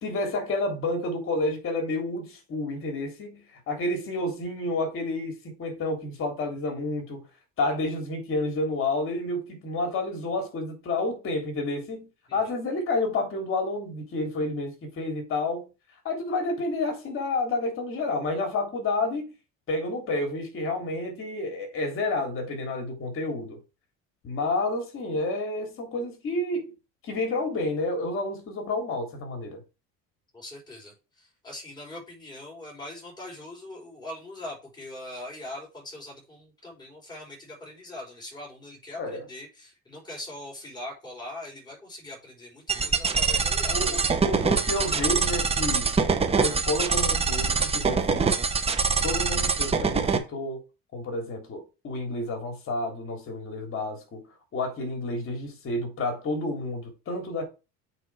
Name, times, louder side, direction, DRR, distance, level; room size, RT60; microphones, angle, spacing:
voice 1, 0.0-7.2 7.6-15.7 16.1-19.3 19.7-23.6 24.2-26.7 27.0-29.6 39.0-39.2 43.7-45.9 46.3-48.3 49.0-50.6 50.9-54.2 54.5-57.4, left 2 dB, 40° left, 3.3 m, -30 dB
voice 2, 30.3-43.8, left 1 dB, 15° left, 5.4 m, -42 dB
sound 1, 42.7-50.2, right 5 dB, 20° right, 1.0 m, -24 dB
8.2 x 4.7 x 6.1 m
cardioid pair, 140°, 31 cm